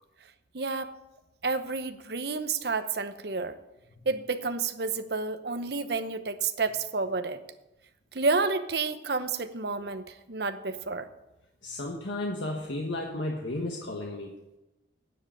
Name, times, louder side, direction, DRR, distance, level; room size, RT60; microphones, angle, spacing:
voice 1, 0.5-0.9 1.4-3.6 4.1-7.4 8.1-11.1, right 4 dB, 60° right, 10 dB, 0.9 m, -30 dB
voice 2, 11.6-14.6, left 2 dB, 80° left, 0 dB, 1.4 m, -34 dB
9.9 x 7.6 x 9.1 m, 0.97 s
head